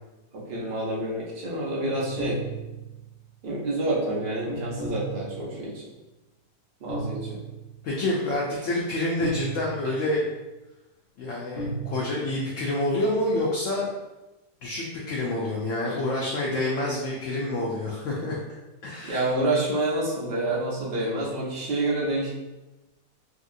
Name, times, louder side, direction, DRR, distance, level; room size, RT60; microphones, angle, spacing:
voice 1, 0.3-2.4 3.4-5.8 6.8-7.4 9.8-9.9 15.9-16.0 19.1-22.3, right 2 dB, 85° right, -5 dB, 0.4 m, -28 dB
sound 1, 1.8-3.1 4.5-5.7 6.9-7.8 9.2-10.2 11.5-11.9, right 2 dB, 25° left, 1.0 m, -34 dB
voice 2, 7.8-10.3 11.2-13.9 14.6-19.3, left 1 dB, 80° left, -4 dB, 0.7 m, -28 dB
2.7 x 2.7 x 2.5 m, 1.0 s
omnidirectional pair, 1.8 m